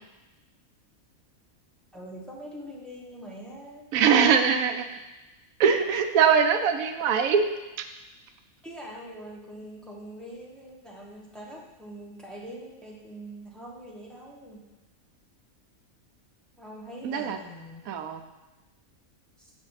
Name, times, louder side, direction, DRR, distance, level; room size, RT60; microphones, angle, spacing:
voice 1, 1.9-3.8 8.6-14.6 16.6-17.8 19.4-19.5, right 1 dB, ahead, -4 dB, 1.0 m, -43 dB
voice 2, 3.9-4.9 5.6-7.5 7.8-7.9 17.0-17.4 17.9-18.2, right 6 dB, 85° right, 6 dB, 1.0 m, -22 dB
7.1 x 5.2 x 4.0 m, 1.1 s
omnidirectional pair, 1.5 m